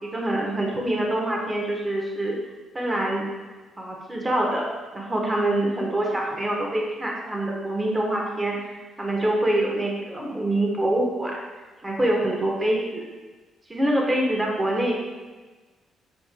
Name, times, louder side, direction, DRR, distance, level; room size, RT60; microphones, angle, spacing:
voice 1, 0.0-2.4 2.7-3.3 3.8-4.7 4.9-13.1 13.7-14.9, right 1 dB, 20° right, -1 dB, 1.1 m, -25 dB
7.6 x 6.4 x 2.2 m, 1.3 s
cardioid pair, 90°, 0 cm